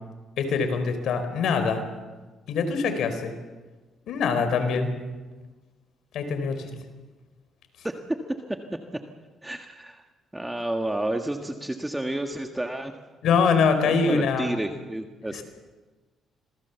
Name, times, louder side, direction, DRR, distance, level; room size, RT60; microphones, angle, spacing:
voice 1, 0.4-1.8 2.5-3.3 4.1-4.9 6.1-6.7 13.2-14.5 15.3-15.4, left 5 dB, 75° left, 8 dB, 4.3 m, -24 dB
voice 2, 7.8-9.0 9.4-10.0 10.3-12.9 13.8-15.4, right 1 dB, 10° right, 4 dB, 1.7 m, -31 dB
27.0 x 19.5 x 7.1 m, 1.3 s
cardioid pair, 90°, 0 cm